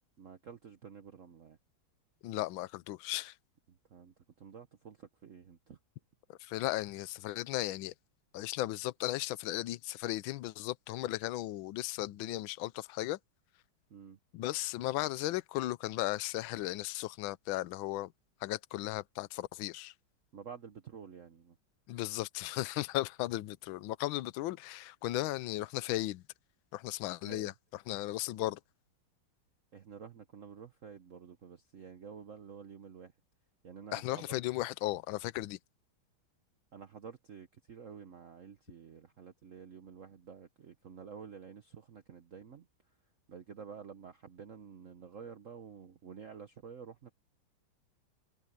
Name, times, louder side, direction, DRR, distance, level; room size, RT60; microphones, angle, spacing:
voice 1, 0.2-1.6 3.7-5.8 13.9-14.2 20.3-21.6 27.2-27.5 29.7-33.1 33.6-34.3 36.7-42.7 43.3-47.1, right 6 dB, 50° right, 1.1 m, -50 dB
voice 2, 2.2-3.3 6.3-7.9 8.3-13.2 14.3-18.1 18.4-19.9 21.9-26.2 26.7-27.5 27.9-28.6 33.9-35.6, left 16 dB, 75° left, 1.4 m, -36 dB
omnidirectional pair, 2.3 m